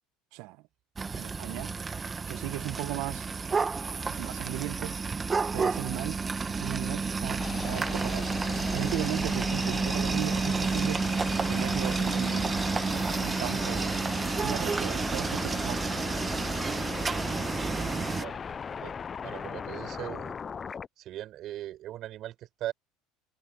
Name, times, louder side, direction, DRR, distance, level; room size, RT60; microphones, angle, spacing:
voice 1, 0.3-0.6 1.2-1.7 2.3-3.3 4.1-5.0 5.5-11.2 11.5-12.6 12.9-13.9 14.4-15.9, right 20 dB, 70° right, 1.3 m, -37 dB
sound 1, 1.0-18.2, right 4 dB, 20° right, 1.3 m, -30 dB
sound 2, 7.4-20.9, left 6 dB, 30° left, 0.5 m, -38 dB
voice 2, 18.8-20.4 21.0-22.7, right 13 dB, 55° right, 7.0 m, -39 dB
supercardioid pair, 110°, 0 cm